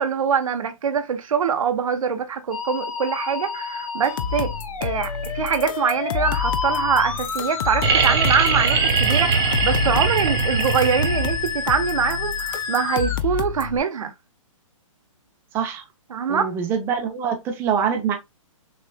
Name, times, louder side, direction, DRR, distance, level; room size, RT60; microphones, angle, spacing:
voice 1, 0.0-4.5 4.8-14.1 16.1-16.5, right 6 dB, 75° right, 1.0 m, -24 dB
Musical instrument, 2.5-13.2, left 6 dB, 85° left, 1.0 m, -30 dB
sound 1, 4.0-13.8, left 8 dB, 40° left, 0.5 m, -30 dB
sound 2, 7.8-11.6 13.3-13.4, right 6 dB, 50° right, 1.0 m, -21 dB
voice 2, 15.5-15.8 16.3-18.2, right 7 dB, 15° right, 0.6 m, -24 dB
6.4 x 2.5 x 2.2 m
hypercardioid pair, 155°, 17 cm